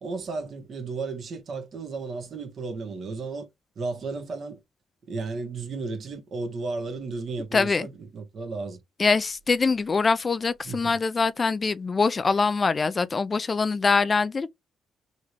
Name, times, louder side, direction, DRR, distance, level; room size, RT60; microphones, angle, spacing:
voice 1, 0.0-3.5 3.8-4.6 5.1-8.8 10.6-10.8, right 3 dB, 55° right, 1.6 m, -33 dB
voice 2, 7.5-7.9 9.0-14.5, left 4 dB, 35° left, 0.4 m, -23 dB
3.7 x 3.1 x 3.3 m
cardioid pair, 90°, 0 cm